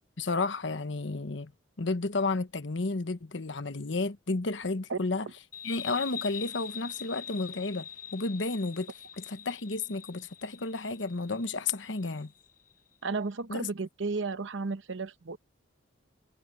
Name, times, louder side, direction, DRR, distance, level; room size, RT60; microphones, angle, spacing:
voice 1, 0.2-1.5 1.8-5.3 5.6-12.3 13.5-13.7, left 3 dB, 70° left, 1.1 m, -32 dB
sound 1, 5.5-12.7, left 8 dB, 45° left, 1.2 m, -44 dB
voice 2, 13.0-15.4, right 4 dB, 70° right, 0.8 m, -33 dB
head